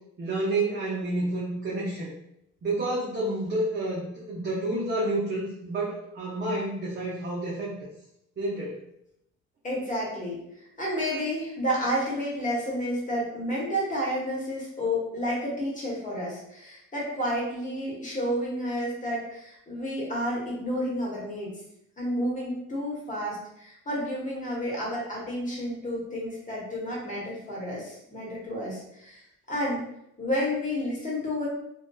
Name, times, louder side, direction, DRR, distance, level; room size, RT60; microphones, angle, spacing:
voice 1, 0.2-2.1 2.6-7.7 8.4-8.8, right 2 dB, 35° right, -5 dB, 0.6 m, -29 dB
voice 2, 9.6-10.4 10.8-21.5 22.0-29.9 30.2-31.5, equal, 25° left, -5 dB, 1.1 m, -30 dB
2.5 x 2.2 x 2.3 m, 0.78 s
cardioid pair, 90°, 30 cm